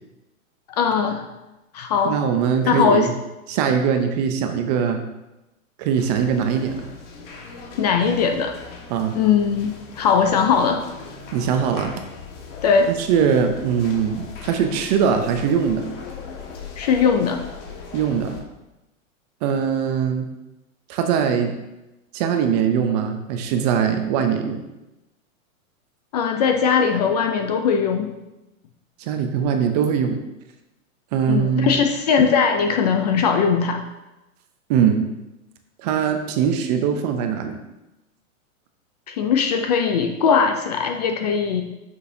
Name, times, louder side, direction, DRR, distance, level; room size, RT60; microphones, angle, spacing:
voice 1, 0.7-1.2 1.7-2.2 2.6-3.1 7.8-8.5 9.1-10.8 12.6-12.9 16.8-17.4 26.1-28.1 31.3-33.8 39.1-41.6, left 6 dB, 30° left, 4 dB, 0.4 m, -20 dB
voice 2, 2.0-3.1 3.5-5.0 5.8-6.9 8.9-9.2 11.3-11.9 13.0-15.9 17.9-18.4 19.4-20.3 20.9-21.5 22.1-24.6 29.0-30.2 31.1-31.8 34.7-35.0 35.8-37.6, right 7 dB, 30° right, 6 dB, 0.6 m, -21 dB
sound 1, 5.9-18.4, left 5 dB, 55° left, 1.7 m, -39 dB
8.2 x 6.2 x 2.7 m, 0.97 s
hypercardioid pair, 150°, 42 cm